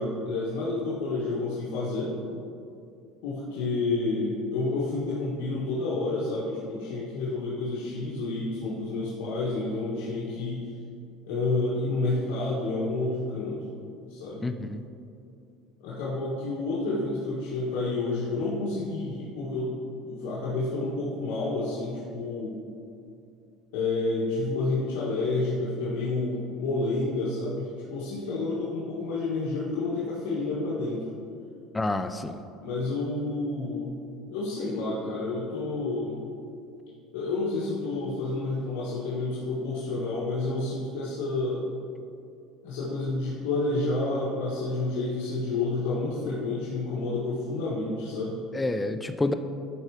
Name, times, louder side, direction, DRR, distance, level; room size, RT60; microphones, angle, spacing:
voice 1, 0.0-2.1 3.2-10.6 11.3-13.6 14.1-14.4 15.8-19.7 20.0-22.5 23.7-31.0 32.6-34.0 34.3-36.2 37.1-41.6 42.6-48.4, left 2 dB, 90° left, -8 dB, 1.6 m, -29 dB
voice 2, 14.4-14.8 31.7-32.4 48.5-49.3, left 2 dB, 10° left, 9 dB, 0.5 m, -28 dB
11.0 x 4.5 x 4.9 m, 2.5 s
cardioid pair, 130°, 0 cm